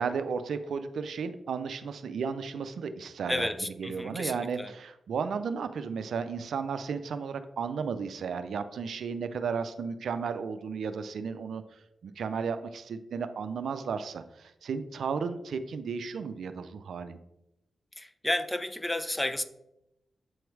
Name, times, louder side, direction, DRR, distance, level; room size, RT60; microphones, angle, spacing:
voice 1, 0.0-3.5 3.8-11.6 12.0-17.2, right 5 dB, 80° right, 0.4 m, -34 dB
voice 2, 3.3-4.7 18.0-19.4, left 1 dB, 15° left, 0.5 m, -32 dB
7.8 x 3.1 x 4.6 m
cardioid pair, 50°, 0 cm